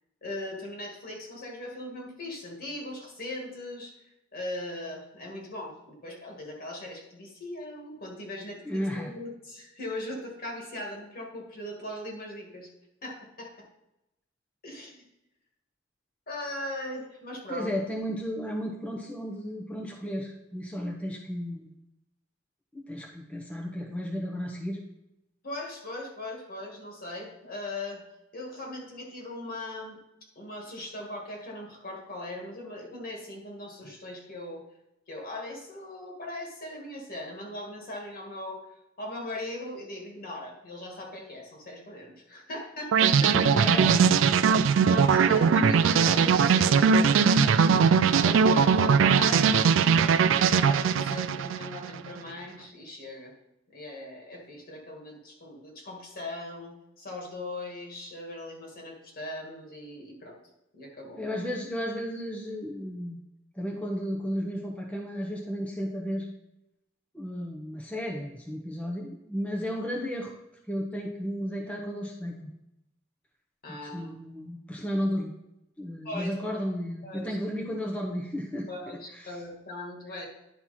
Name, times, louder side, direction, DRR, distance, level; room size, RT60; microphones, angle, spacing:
voice 1, 0.2-4.0 4.3-12.7 13.0-13.7 14.6-15.0 16.3-17.7 25.4-28.0 28.3-30.0 30.4-34.6 35.1-38.6 39.0-43.3 44.5-49.6 50.0-53.3 53.7-60.4 60.7-61.2 73.6-74.1 76.0-76.4 77.0-77.4 78.7-80.2, left 1 dB, 50° left, 0 dB, 2.1 m, -39 dB
voice 2, 8.6-9.1 17.5-21.7 22.7-24.8 43.2-44.3 61.2-63.2 63.5-66.3 67.1-70.3 70.7-72.5 73.7-75.3 75.8-79.3, equal, 5° left, -2 dB, 0.8 m, -33 dB
sound 1, 42.9-52.0, right 6 dB, 75° right, 0.4 m, -21 dB
11.0 x 4.4 x 4.3 m, 0.89 s
head